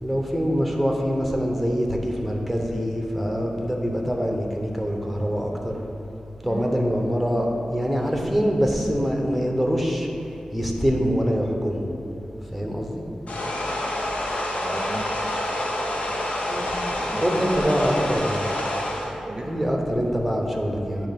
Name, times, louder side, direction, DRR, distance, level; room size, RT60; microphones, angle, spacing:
voice 1, 0.0-5.8 6.4-10.1 10.5-11.9 12.5-13.0 16.5-18.5 19.4-21.1, equal, 5° left, 0 dB, 0.8 m, -24 dB
sound 1, 13.3-19.1, left 1 dB, 80° left, 0.8 m, -27 dB
voice 2, 14.6-15.2 17.1-18.2 18.9-19.5, right 2 dB, 35° right, 0 dB, 0.5 m, -34 dB
8.6 x 3.0 x 5.8 m, 2.9 s
wide cardioid pair, 115°, 2 cm